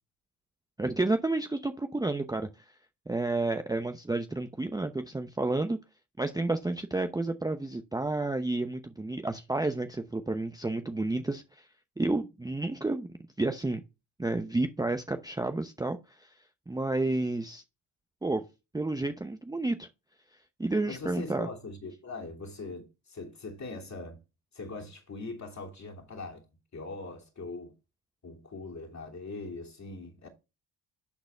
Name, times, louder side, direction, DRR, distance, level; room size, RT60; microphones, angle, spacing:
voice 1, 0.8-2.5 3.1-5.8 6.2-11.4 12.0-13.1 13.4-13.8 14.2-16.3 16.7-17.6 18.2-18.4 18.7-19.9 20.6-21.5, right 2 dB, 10° right, 0.7 m, -30 dB
voice 2, 20.8-24.2 24.5-26.5 26.7-27.7 28.2-30.3, left 3 dB, 35° left, 2.9 m, -41 dB
12.0 x 4.0 x 3.4 m
supercardioid pair, 65°, 47 cm